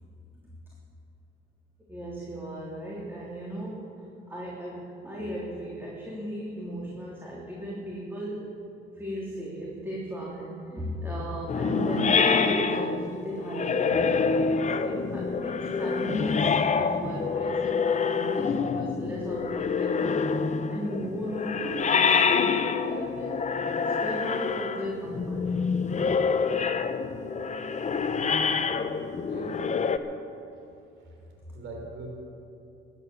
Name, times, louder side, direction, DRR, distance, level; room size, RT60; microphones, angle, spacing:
voice 1, 1.9-3.8 4.3-8.5 9.0-23.4 23.8-26.1, equal, 10° right, -5 dB, 3.1 m, -36 dB
sound 1, 11.5-30.0, left 5 dB, 35° left, 0.8 m, -26 dB
voice 2, 28.1-28.5 29.2-29.6 31.0-31.1 31.5-32.1, right 2 dB, 80° right, 0 dB, 3.7 m, -40 dB
16.0 x 11.0 x 7.0 m, 2.7 s
cardioid pair, 90°, 20 cm